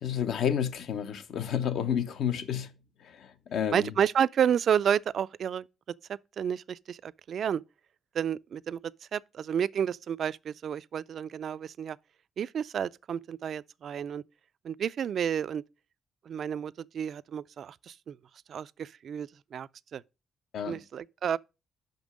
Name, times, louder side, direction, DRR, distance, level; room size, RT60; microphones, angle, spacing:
voice 1, 0.0-2.7 3.0-3.9 20.5-20.8, left 8 dB, 70° left, 0.9 m, -30 dB
voice 2, 3.7-5.6 6.4-7.6 8.1-8.8 9.1-12.0 12.4-14.2 14.6-15.6 16.3-18.2 18.5-20.0 20.7-21.4, right 8 dB, 60° right, 0.3 m, -30 dB
5.8 x 5.3 x 6.2 m
cardioid pair, 90°, 0 cm